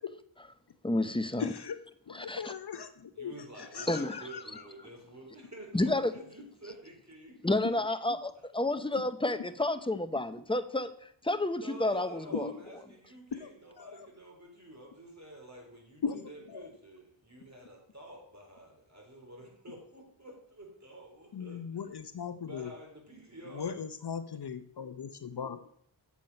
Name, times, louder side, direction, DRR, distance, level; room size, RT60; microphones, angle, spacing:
voice 1, 0.8-1.5 2.1-2.5 3.9-4.1 5.7-6.1 7.4-10.9 11.2-12.5, left 2 dB, 10° left, 11 dB, 0.7 m, -30 dB
voice 2, 1.4-1.8 2.1-3.3 3.6-4.6 12.3-12.6 13.4-13.5 13.8-14.1 16.0-16.7 21.3-22.7 23.5-25.6, left 6 dB, 50° left, 10 dB, 0.8 m, -38 dB
voice 3, 3.1-7.8 11.5-21.6 22.4-23.9, right 1 dB, 35° right, 0 dB, 3.6 m, -49 dB
7.3 x 7.2 x 5.3 m, 0.64 s
cardioid pair, 45°, 49 cm